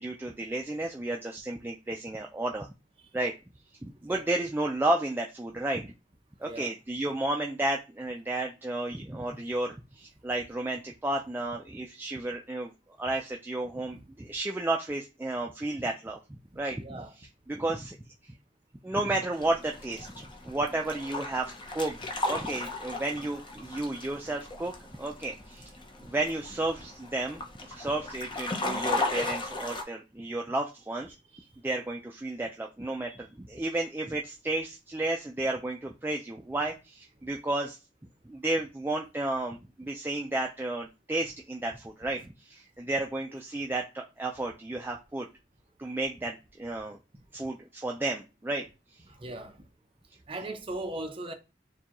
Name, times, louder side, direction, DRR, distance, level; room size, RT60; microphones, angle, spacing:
voice 1, 0.0-2.7 3.1-3.3 3.8-5.9 6.4-12.7 13.0-16.9 17.5-18.0 18.2-18.3 18.8-22.0 22.3-25.7 26.0-27.4 27.7-31.1 31.6-37.8 38.3-45.3 45.8-47.0 47.3-48.6, right 2 dB, 10° right, 0.3 m, -32 dB
voice 2, 6.4-6.7 13.9-14.0 16.8-17.1 31.3-31.4 43.3-43.7 49.1-49.6 50.3-51.3, right 2 dB, 30° right, 0.7 m, -39 dB
sound 1, 19.3-29.8, left 2 dB, 25° left, 0.6 m, -36 dB
6.7 x 2.3 x 2.9 m
head